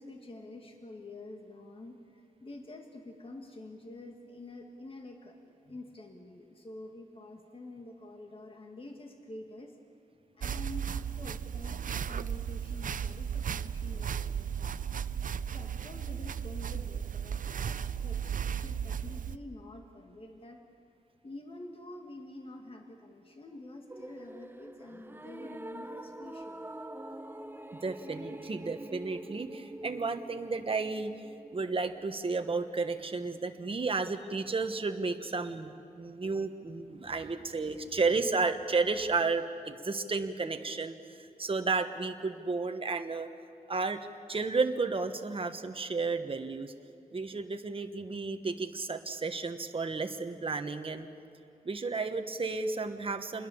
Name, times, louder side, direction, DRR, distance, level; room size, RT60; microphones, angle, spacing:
voice 1, 0.0-9.8 10.4-15.0 15.5-20.6 21.2-26.7, left 2 dB, 40° left, 3 dB, 2.0 m, -48 dB
sound 1, 10.4-19.4, right 8 dB, 65° right, 0.5 m, -35 dB
sound 2, 23.9-32.1, right 1 dB, 15° right, 0.7 m, -45 dB
voice 2, 27.7-31.1 31.5-43.3 43.7-46.7 47.1-51.1 51.6-53.5, right 4 dB, 40° right, 7 dB, 1.3 m, -32 dB
28.0 x 21.0 x 7.1 m, 2.5 s
wide cardioid pair, 135°, 15 cm